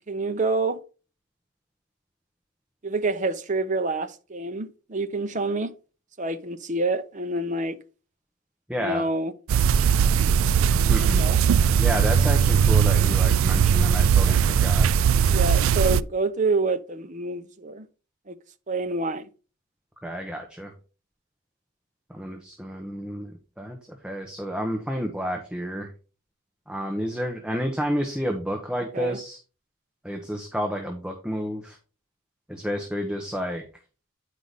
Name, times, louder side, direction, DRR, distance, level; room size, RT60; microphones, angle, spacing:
voice 1, 0.1-0.8 2.8-5.7 6.2-7.8 8.8-9.3 11.0-11.4 15.3-17.9 18.3-18.4 18.7-19.3 28.9-29.2, right 3 dB, 35° right, 0.7 m, -27 dB
voice 2, 8.7-9.0 10.8-11.2 11.8-14.9 20.0-20.7 22.1-25.9 26.7-29.4 30.0-31.8 32.5-33.6, equal, 5° right, 0.9 m, -30 dB
sound 1, 9.5-16.0, right 7 dB, 70° right, 0.3 m, -19 dB
9.6 x 4.9 x 4.0 m
head